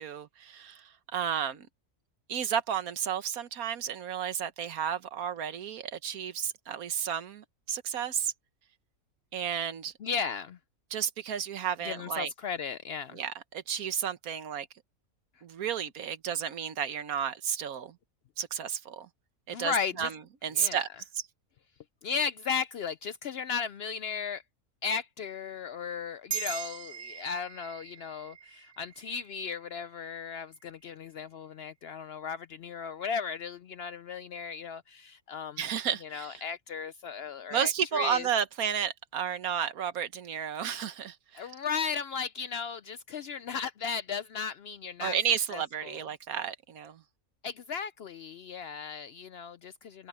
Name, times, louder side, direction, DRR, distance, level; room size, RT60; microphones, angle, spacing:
voice 1, 0.0-1.7 2.3-8.3 9.3-9.9 10.9-12.3 13.1-14.7 15.4-18.0 18.4-19.1 19.5-20.2 20.4-20.9 21.1-21.2 35.6-36.4 37.5-41.5 45.0-47.0, right 8 dB, 85° right, 1.5 m, -32 dB
voice 2, 10.0-10.6 11.8-13.2 19.5-20.1 20.5-20.8 22.0-24.4 24.8-35.7 36.0-38.3 41.3-45.2 45.5-46.0 47.4-50.1, left 6 dB, 65° left, 0.6 m, -35 dB
sound 1, 26.3-31.0, right 8 dB, 50° right, 1.4 m, -42 dB
omnidirectional pair, 1.5 m